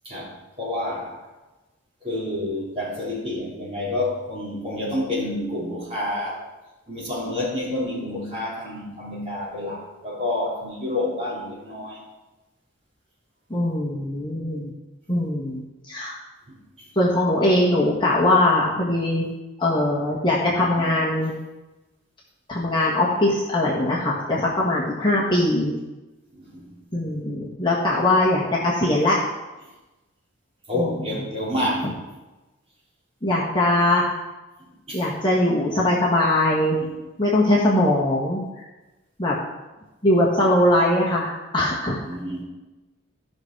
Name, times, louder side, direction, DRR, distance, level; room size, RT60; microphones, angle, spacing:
voice 1, 0.0-1.3 2.0-6.5 6.9-12.1 16.5-16.9 20.8-20.9 26.3-26.8 30.7-32.0 34.6-35.0 36.8-36.9 42.0-42.4, left 1 dB, 30° right, -7 dB, 3.7 m, -29 dB
voice 2, 13.5-14.7 15.1-16.2 16.9-19.2 19.6-21.3 22.5-25.7 26.9-29.3 30.7-31.0 33.2-34.1 34.9-36.8 37.2-38.6 39.2-39.4 40.0-42.0, left 1 dB, 20° left, -5 dB, 1.6 m, -21 dB
14.0 x 6.2 x 4.7 m, 1.1 s
head